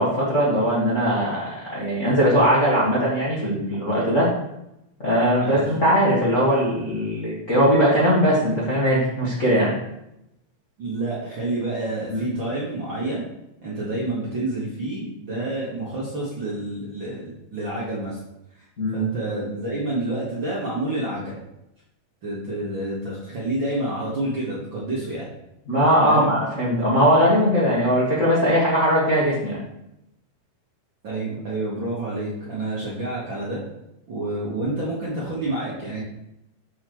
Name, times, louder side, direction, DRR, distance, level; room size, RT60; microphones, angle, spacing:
voice 1, 0.0-4.3 5.0-9.7 12.1-12.3 18.8-19.1 25.7-29.6, equal, 75° left, -7 dB, 0.7 m, -20 dB
voice 2, 10.8-13.2 13.6-18.2 18.5-18.6 18.9-21.4 22.2-25.3 26.0-26.3 31.0-33.6 34.1-36.0, right 2 dB, 55° right, -6 dB, 1.3 m, -28 dB
7.4 x 6.6 x 3.1 m, 0.84 s
omnidirectional pair, 4.3 m